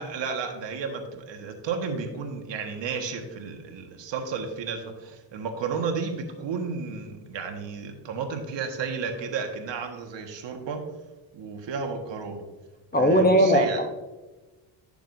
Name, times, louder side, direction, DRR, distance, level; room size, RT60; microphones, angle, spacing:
voice 1, 0.0-10.8 11.3-12.5 13.0-13.8, right 5 dB, 60° right, 4 dB, 1.6 m, -32 dB
voice 2, 12.9-13.9, equal, 20° left, 6 dB, 0.7 m, -19 dB
11.0 x 6.8 x 2.6 m, 1.1 s
cardioid pair, 105°, 49 cm